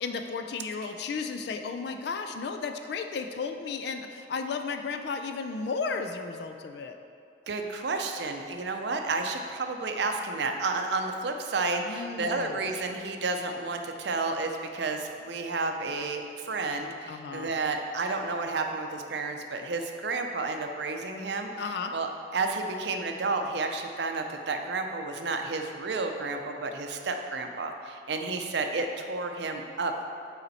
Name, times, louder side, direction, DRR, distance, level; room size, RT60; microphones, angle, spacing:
voice 1, 0.0-7.0 11.8-12.6 17.1-17.5 21.6-21.9, left 4 dB, 60° left, 6 dB, 0.3 m, -34 dB
voice 2, 7.5-30.0, right 3 dB, 65° right, 4 dB, 0.5 m, -31 dB
6.9 x 4.2 x 4.1 m, 2.5 s
head